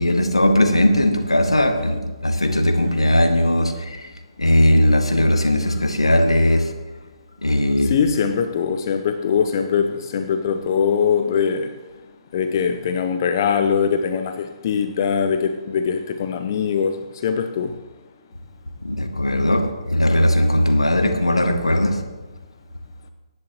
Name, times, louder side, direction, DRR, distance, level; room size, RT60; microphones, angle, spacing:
voice 1, 0.0-6.7 7.4-8.0 18.8-22.0, left 1 dB, 80° left, 1.8 m, -18 dB
voice 2, 7.8-11.7 12.3-17.8, left 6 dB, 40° left, 0.7 m, -22 dB
23.5 x 11.0 x 3.0 m
figure-of-eight pair, 130°, 3 cm